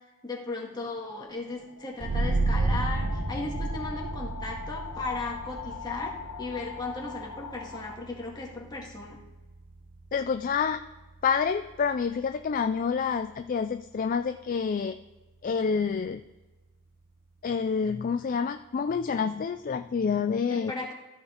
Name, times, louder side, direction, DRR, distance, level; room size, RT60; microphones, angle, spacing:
voice 1, 0.2-9.2 20.5-20.9, left 3 dB, 20° left, -2 dB, 1.9 m, -36 dB
sound 1, 0.7-8.5, left 6 dB, 85° left, 0.9 m, -43 dB
sound 2, 2.0-13.3, right 2 dB, 60° right, 1.0 m, -33 dB
voice 2, 10.1-10.8 11.2-15.0 15.4-16.2 17.4-20.7, left 6 dB, 40° left, 8 dB, 0.3 m, -28 dB
14.0 x 4.6 x 4.4 m, 1.1 s
head